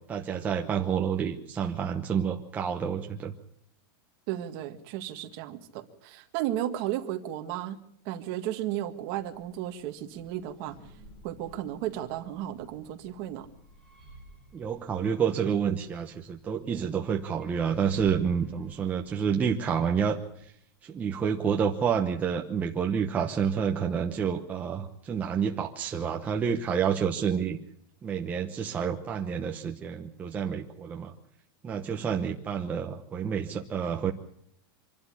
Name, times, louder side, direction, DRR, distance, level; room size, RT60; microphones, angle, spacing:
voice 1, 0.1-3.3 14.5-20.5 20.8-27.6 28.0-31.1 31.6-34.1, right 7 dB, 15° right, 2 dB, 1.0 m, -29 dB
voice 2, 4.3-7.8 8.1-10.8 11.2-13.5, right 12 dB, 40° right, 6 dB, 1.8 m, -34 dB
sound 1, 8.6-20.7, equal, 5° left, 4.4 m, -52 dB
25.5 x 12.5 x 10.0 m, 0.70 s
supercardioid pair, 175°, 12 cm